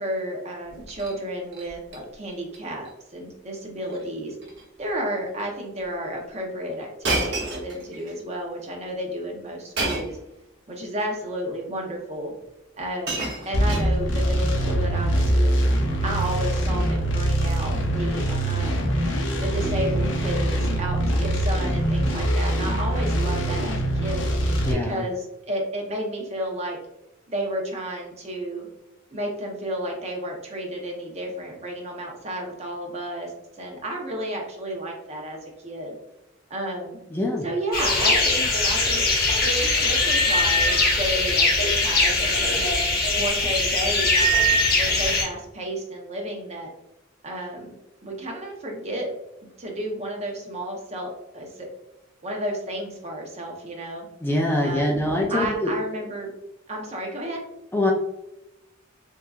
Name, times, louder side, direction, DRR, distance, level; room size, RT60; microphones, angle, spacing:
voice 1, 0.0-2.9 3.1-4.4 4.8-10.2 10.7-12.3 12.8-15.6 16.0-18.9 19.4-24.2 24.7-26.8 27.3-28.7 29.1-36.0 36.5-37.0 37.4-42.7 43.1-46.7 47.2-47.8 48.0-49.1 49.6-51.7 52.2-54.1 54.6-56.3 56.7-57.4, right 1 dB, 35° right, 0 dB, 0.7 m, -32 dB
Shatter, 0.7-1.2 1.5-2.0 2.3-2.6 2.8-2.9 3.8-4.0 4.4-4.6 5.4-5.5 7.0-8.1 9.8-10.2 11.3-11.4 12.4-12.5 12.8-14.3 15.2-15.5, right 2 dB, 60° right, 1.0 m, -30 dB
sound 1, 13.5-24.7, right 1 dB, 65° left, 0.6 m, -23 dB
voice 2, 24.6-25.0 37.1-37.4 54.2-55.7 57.7-57.9, left 1 dB, 10° left, -1 dB, 0.3 m, -24 dB
sound 2, 37.7-45.2, left 2 dB, 50° left, 0.9 m, -21 dB
3.6 x 2.7 x 2.3 m, 0.91 s
head